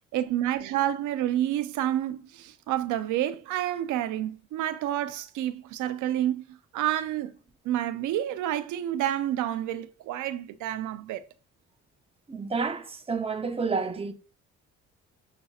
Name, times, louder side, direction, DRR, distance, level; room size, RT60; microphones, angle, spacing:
voice 1, 0.1-7.3 7.6-11.3, right 12 dB, 80° right, 0.5 m, -29 dB
voice 2, 12.3-14.1, right 4 dB, 20° right, 0.7 m, -30 dB
6.6 x 2.8 x 2.3 m
cardioid pair, 90°, 30 cm